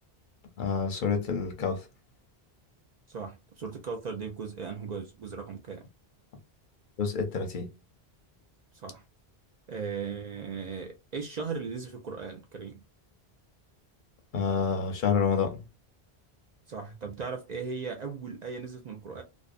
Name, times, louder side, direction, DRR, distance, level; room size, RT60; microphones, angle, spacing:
voice 1, 0.6-1.9 7.0-7.7 14.3-15.6, left 5 dB, 60° left, 0.7 m, -28 dB
voice 2, 3.1-5.8 8.7-9.0 9.7-12.8 16.7-19.2, right 5 dB, 55° right, 0.5 m, -37 dB
2.5 x 2.1 x 2.4 m
omnidirectional pair, 1.0 m